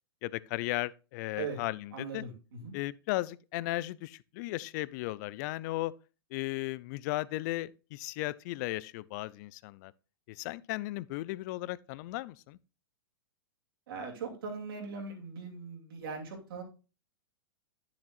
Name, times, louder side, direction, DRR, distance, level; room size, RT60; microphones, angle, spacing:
voice 1, 0.2-2.2 2.7-5.9 6.3-9.9 10.3-12.6, left 18 dB, 45° left, 0.4 m, -36 dB
voice 2, 1.9-2.7 13.9-16.6, right 5 dB, 70° right, 2.8 m, -40 dB
9.6 x 7.2 x 2.4 m
hypercardioid pair, 115°, 13 cm